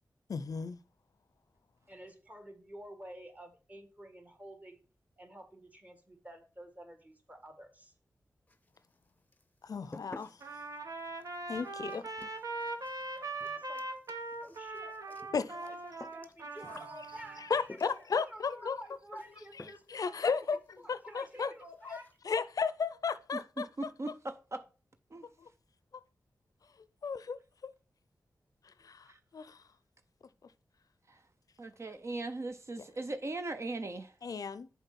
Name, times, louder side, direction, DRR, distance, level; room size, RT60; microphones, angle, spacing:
voice 1, 0.3-0.8 9.6-10.4 11.5-12.0 15.3-15.5 17.4-18.8 19.9-20.6 20.9-21.5 21.9-22.0 22.2-23.7 25.4-25.5 27.0-27.7 28.6-29.6 34.2-34.7, left 5 dB, 70° left, 0.5 m, -34 dB
voice 2, 1.9-4.8 5.2-7.9 12.0-12.4 13.1-13.8 14.4-22.1, right 1 dB, 25° right, 1.7 m, -51 dB
sound 1, 8.5-9.0 9.3-18.2 19.2-19.3 19.6-20.1 20.3-20.4 20.8-20.9 21.2-21.4 21.7-22.2, left 2 dB, 25° left, 0.6 m, -53 dB
Trumpet, 10.4-17.5, right 2 dB, 65° right, 1.3 m, -41 dB
voice 3, 23.3-24.6 25.1-25.3 29.1-29.2 31.1-31.2 31.6-34.1, right 2 dB, 45° right, 0.6 m, -39 dB
6.9 x 4.4 x 5.8 m
cardioid pair, 55°, 6 cm